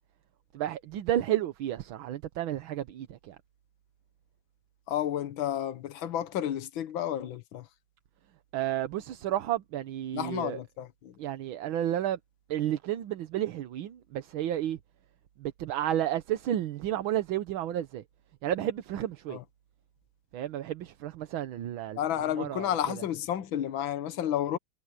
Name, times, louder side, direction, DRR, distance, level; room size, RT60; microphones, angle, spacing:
voice 1, 0.5-3.4 8.5-10.6 11.2-12.2 12.5-14.8 15.4-18.0 18.4-19.4 20.3-22.0 22.4-22.7, right 12 dB, 80° right, 1.7 m, -31 dB
voice 2, 4.9-7.7 10.1-11.1 19.3-19.4 22.0-24.6, left 10 dB, 75° left, 1.9 m, -31 dB
omnidirectional pair, 2.2 m